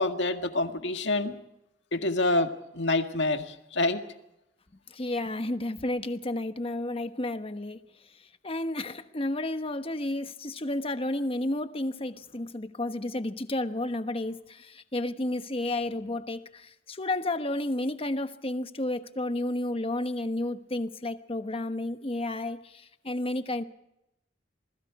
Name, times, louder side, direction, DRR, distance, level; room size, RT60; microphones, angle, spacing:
voice 1, 0.0-1.3 1.9-4.0, left 2 dB, 75° left, 1.9 m, -27 dB
voice 2, 4.9-7.8 8.4-23.6, left 1 dB, 30° left, 1.2 m, -31 dB
28.0 x 20.5 x 4.8 m
head